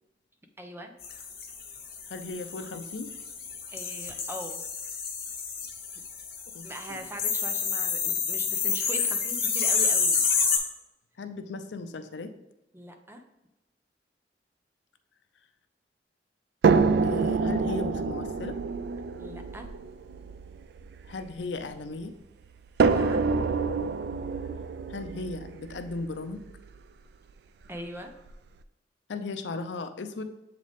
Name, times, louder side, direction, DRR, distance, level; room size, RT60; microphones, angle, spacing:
voice 1, 0.6-0.9 3.7-4.6 6.6-10.2 12.7-13.2 19.2-19.7 22.8-23.4 27.7-28.1, right 1 dB, 15° right, 5 dB, 0.6 m, -41 dB
sound 1, 1.0-10.6, left 5 dB, 60° left, 1.1 m, -29 dB
voice 2, 2.1-3.1 6.5-7.0 11.2-12.3 17.0-18.6 21.1-22.1 24.9-26.4 29.1-30.2, left 3 dB, 80° left, 9 dB, 0.5 m, -36 dB
sound 2, 16.6-21.9 22.8-26.8 27.7-27.8 28.3-28.4, right 4 dB, 65° right, 0.3 m, -27 dB
7.4 x 3.9 x 3.4 m, 0.93 s
head